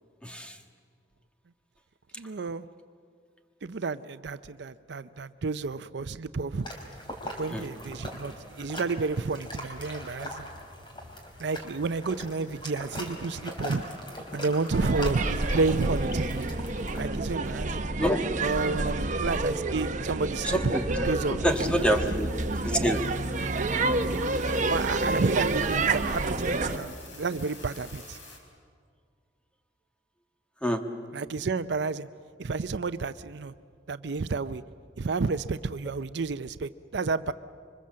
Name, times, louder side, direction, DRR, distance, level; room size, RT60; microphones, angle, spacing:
voice 1, 0.2-0.6 7.5-7.7 17.9-18.2 20.4-22.3 22.6-23.0 30.6-30.8, equal, 5° left, 4 dB, 1.5 m, -27 dB
voice 2, 2.2-2.7 3.6-6.7 7.4-10.5 11.4-13.8 14.3-16.5 17.0-17.9 18.4-21.4 24.7-28.2 31.1-32.1 32.4-33.5 33.9-34.6 35.0-37.3, right 4 dB, 65° right, 13 dB, 0.6 m, -30 dB
sound 1, 6.6-17.1, equal, 25° left, 3.7 m, -41 dB
sound 2, 14.7-26.8, right 2 dB, 45° right, 1.1 m, -29 dB
sound 3, 21.5-28.4, left 3 dB, 80° left, 4.6 m, -49 dB
26.0 x 24.5 x 7.5 m, 2.1 s
head